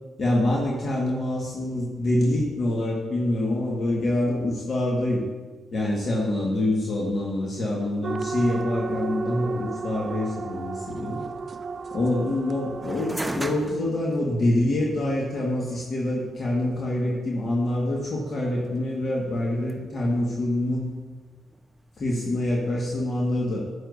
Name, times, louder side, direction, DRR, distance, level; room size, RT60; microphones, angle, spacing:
voice 1, 0.2-5.2 5.7-11.2 11.9-20.9 22.0-23.6, left 1 dB, 50° left, -3 dB, 1.6 m, -26 dB
sound 1, 8.0-13.3, right 4 dB, 50° right, 0.3 m, -33 dB
sound 2, 12.8-22.0, right 1 dB, 15° right, 0.9 m, -40 dB
9.0 x 8.8 x 2.6 m, 1.3 s
hypercardioid pair, 45°, 0 cm